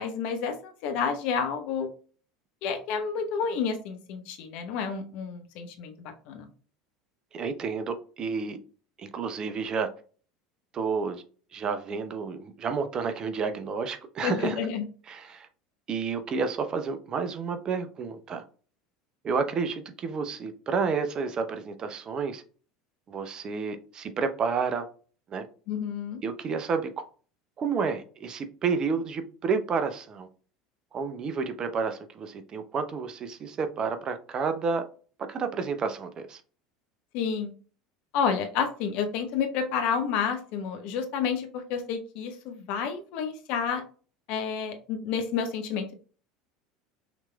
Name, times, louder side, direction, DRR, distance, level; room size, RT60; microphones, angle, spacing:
voice 1, 0.0-1.9 2.6-6.5 14.2-14.8 25.7-26.2 37.1-37.5 38.1-43.8 44.3-45.9, left 6 dB, 55° left, 0.9 m, -30 dB
voice 2, 7.3-8.6 9.0-9.9 10.7-11.2 11.5-14.7 15.1-15.5 15.9-18.4 19.2-22.4 23.1-24.9 25.3-25.5 26.2-27.0 27.6-30.3 30.9-34.8 35.2-36.4, right 5 dB, 35° right, 0.6 m, -30 dB
5.9 x 3.3 x 2.2 m
figure-of-eight pair, 70°, 2 cm